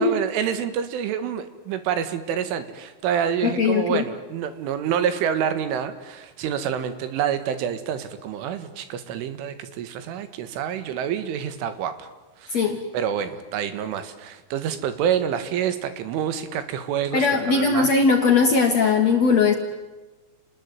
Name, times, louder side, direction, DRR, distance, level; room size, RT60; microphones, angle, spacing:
voice 1, 0.0-12.1 12.4-17.9, right 8 dB, 85° right, 11 dB, 4.2 m, -27 dB
voice 2, 3.4-4.0 12.5-12.8 17.1-19.5, left 5 dB, 55° left, 3 dB, 2.0 m, -19 dB
29.5 x 20.5 x 9.4 m, 1.2 s
omnidirectional pair, 5.5 m